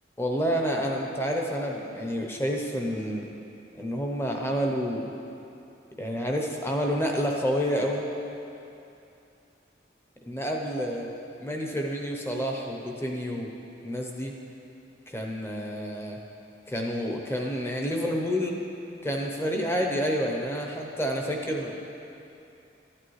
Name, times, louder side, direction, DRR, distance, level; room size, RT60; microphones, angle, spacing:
voice 1, 0.2-3.3 3.7-5.1 6.0-8.0 10.2-11.1 11.4-13.5 13.8-14.3 15.1-16.2 16.7-18.6 19.0-21.7, equal, 15° left, 1 dB, 0.7 m, -29 dB
12.5 x 8.8 x 3.2 m, 2.8 s
head